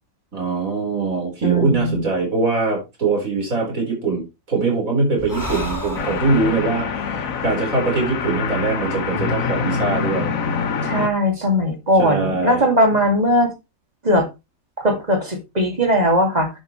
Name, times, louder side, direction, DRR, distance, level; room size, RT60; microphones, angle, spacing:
voice 1, 0.3-10.3 12.0-12.6, right 3 dB, 85° right, 5.0 m, -22 dB
voice 2, 1.4-2.0 10.8-13.5 14.0-14.3 14.8-16.5, equal, 30° right, 2.4 m, -19 dB
Breathing, 5.2-8.7, left 1 dB, 15° left, 1.5 m, -33 dB
sound 1, 5.9-11.1, left 5 dB, 80° left, 1.4 m, -25 dB
10.0 x 7.9 x 3.1 m
omnidirectional pair, 1.4 m